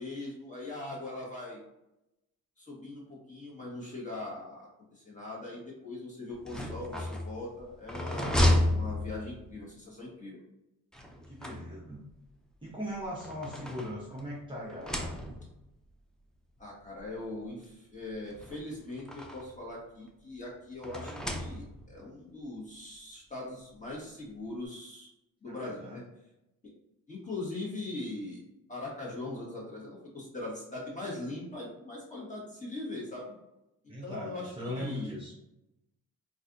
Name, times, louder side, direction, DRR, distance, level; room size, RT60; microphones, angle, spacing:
voice 1, 0.0-1.6 2.6-10.4 16.6-25.1 25.4-26.0 26.6-26.7 27.1-28.4 28.7-33.3 34.0-35.1, left 2 dB, 20° left, -5 dB, 1.4 m, -41 dB
sound 1, 6.3-9.6 10.9-12.1 12.9-14.3 14.7-15.6 16.6-16.7 17.0-17.1 18.3-19.6 20.8-22.0, left 1 dB, ahead, 0.4 m, -32 dB
voice 2, 11.3-12.0 12.6-15.4 25.5-26.0 33.9-35.3, equal, 15° right, -6 dB, 0.8 m, -39 dB
4.1 x 2.6 x 2.5 m, 0.90 s
cardioid pair, 110°, 37 cm